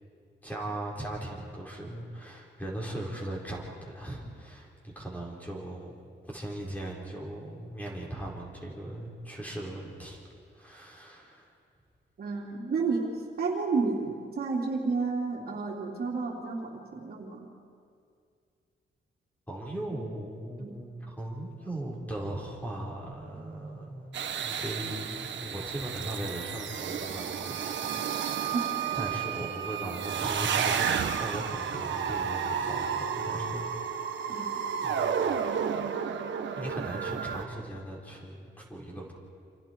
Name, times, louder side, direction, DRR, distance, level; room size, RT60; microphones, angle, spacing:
voice 1, 0.4-6.0 6.3-10.2 10.5-11.5 19.5-28.5 28.9-33.7 34.3-35.5 36.6-39.1, right 1 dB, 10° left, -3 dB, 4.4 m, -39 dB
voice 2, 12.2-13.1 13.4-17.5 20.6-20.7 28.5-28.6 28.9-29.0 34.3-34.6, right 4 dB, 50° right, -1 dB, 3.1 m, -31 dB
sound 1, 24.1-37.4, right 7 dB, 75° right, 1.4 m, -32 dB
29.0 x 27.0 x 4.6 m, 2.3 s
wide cardioid pair, 160°, 19 cm